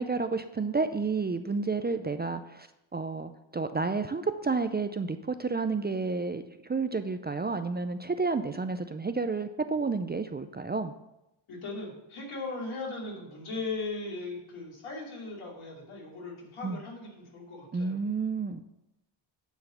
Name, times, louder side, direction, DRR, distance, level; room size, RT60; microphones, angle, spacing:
voice 1, 0.0-2.7 2.9-10.9 16.6-16.8 17.7-18.6, right 4 dB, 20° right, 9 dB, 0.4 m, -30 dB
voice 2, 11.5-17.9, left 3 dB, 80° left, -3 dB, 2.9 m, -38 dB
9.6 x 4.0 x 7.0 m, 0.89 s
cardioid pair, 85°, 48 cm